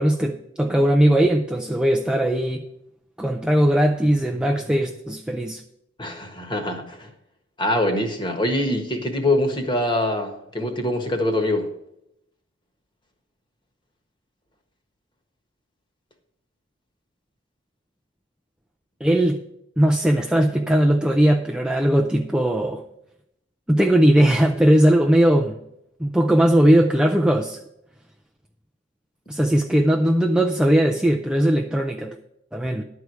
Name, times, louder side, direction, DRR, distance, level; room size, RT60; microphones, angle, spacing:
voice 1, 0.0-2.6 3.2-5.6 19.0-19.4 19.8-22.8 23.7-25.6 26.0-27.6 29.3-32.2 32.5-32.8, right 1 dB, 5° right, 2 dB, 0.4 m, -19 dB
voice 2, 6.0-7.1 7.6-11.7, left 1 dB, 25° left, 5 dB, 1.3 m, -24 dB
11.5 x 4.7 x 8.2 m, 0.79 s
head